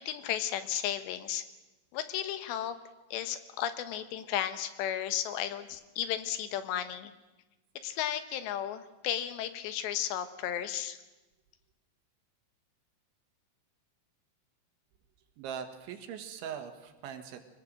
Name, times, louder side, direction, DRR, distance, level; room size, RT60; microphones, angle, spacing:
voice 1, 0.0-1.4 1.9-2.8 3.1-7.1 7.8-11.0, left 10 dB, 75° left, 11 dB, 3.2 m, -34 dB
voice 2, 15.4-17.4, right 8 dB, 85° right, 6 dB, 4.0 m, -41 dB
24.0 x 19.5 x 7.7 m, 1.1 s
omnidirectional pair, 5.3 m